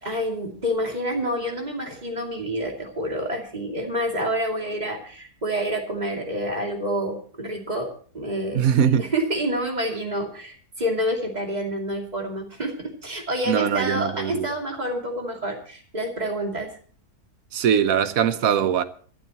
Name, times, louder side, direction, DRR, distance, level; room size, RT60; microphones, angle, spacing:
voice 1, 0.0-16.7, equal, 25° right, 2.9 m, -28 dB
voice 2, 8.5-9.1 13.5-14.5 17.5-18.8, right 8 dB, 70° right, 1.3 m, -21 dB
25.0 x 12.0 x 3.0 m
omnidirectional pair, 1.6 m